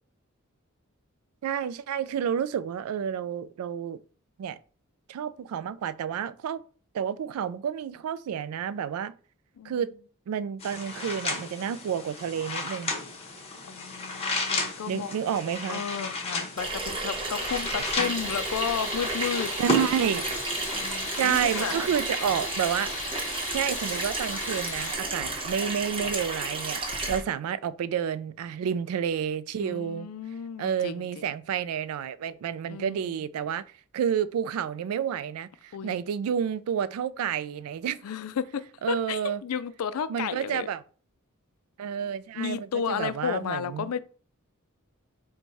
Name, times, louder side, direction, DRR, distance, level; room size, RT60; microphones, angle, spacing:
voice 1, 1.4-4.0 4.4-4.6 5.1-6.6 6.9-9.1 9.6-9.9 10.3-13.0 14.9-15.9 19.6-20.2 21.2-22.9 23.5-26.8 27.1-30.1 30.6-33.6 33.9-38.0 38.8-39.4 40.1-40.8 41.8-43.9, right 8 dB, 75° right, 0.3 m, -30 dB
sound 1, 10.6-21.9, left 2 dB, 30° left, 0.9 m, -34 dB
voice 2, 13.7-15.1 15.7-19.5 20.7-21.8 27.1-27.2 29.6-31.3 32.7-33.2 35.7-36.0 38.0-40.7 42.3-44.0, left 7 dB, 80° left, 0.4 m, -33 dB
Water tap faucet / Sink (filling or washing), 16.6-27.2, right 2 dB, 25° right, 0.8 m, -32 dB
Tools, 18.0-24.9, left 6 dB, 55° left, 0.8 m, -39 dB
4.6 x 2.2 x 4.0 m
head